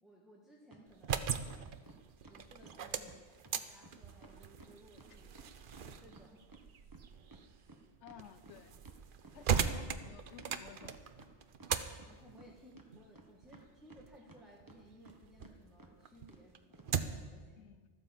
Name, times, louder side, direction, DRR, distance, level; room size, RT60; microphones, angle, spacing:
voice 1, 0.0-1.8 2.2-5.3 5.8-6.4 12.1-17.7, equal, ahead, -3 dB, 1.6 m, -60 dB
sound 1, 0.7-0.8 1.1-2.8 3.1-3.2 3.4-3.6 3.8-3.9 4.2-6.6 6.9-9.7 10.0-10.1 10.4-11.3 11.6-12.5 12.8-14.4 14.7-15.1 15.4-15.5 15.8-15.9 16.3-16.4 16.7-16.9, right 2 dB, 20° right, 1.2 m, -57 dB
sound 2, 0.9-15.6 16.0-17.4, right 7 dB, 55° right, 0.8 m, -40 dB
voice 2, 8.0-8.7 9.3-11.0 17.6-17.9, left 8 dB, 80° left, 12 dB, 1.0 m, -54 dB
14.0 x 9.9 x 7.3 m, 1.4 s
omnidirectional pair, 1.2 m